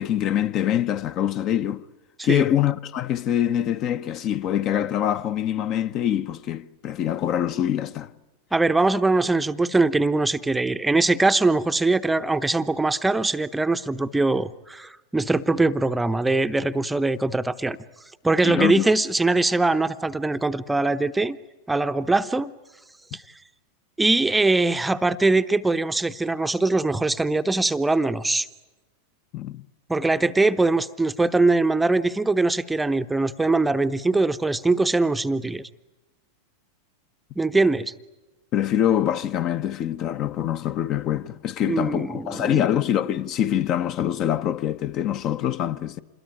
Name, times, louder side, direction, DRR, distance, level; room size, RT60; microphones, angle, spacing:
voice 1, 0.0-1.8 2.2-8.1 18.4-18.8 29.3-29.6 38.5-46.0, left 11 dB, 35° left, 0.9 m, -24 dB
voice 2, 8.5-17.8 18.2-21.4 21.7-22.5 23.1-23.2 24.0-28.5 29.9-35.7 37.4-37.9 41.6-42.6, right 3 dB, 5° right, 0.8 m, -22 dB
27.5 x 21.5 x 9.2 m
figure-of-eight pair, 90°, 0 cm